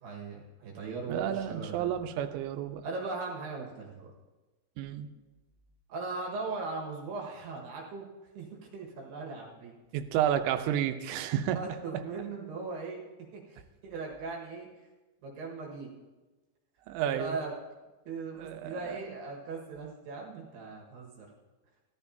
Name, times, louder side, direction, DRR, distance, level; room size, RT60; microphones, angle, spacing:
voice 1, 0.0-1.9 2.8-4.1 5.9-8.0 8.3-8.5 8.7-9.7 11.5-13.0 13.3-13.6 13.8-14.7 15.2-15.9 17.1-17.5 18.1-21.3, right 3 dB, 70° right, -2 dB, 3.4 m, -39 dB
voice 2, 1.1-2.8 4.8-5.1 9.9-11.6 11.9-12.0 16.9-17.4 18.4-19.1, right 10 dB, 85° right, 8 dB, 3.0 m, -31 dB
17.5 x 12.0 x 2.7 m, 1.2 s
omnidirectional pair, 5.1 m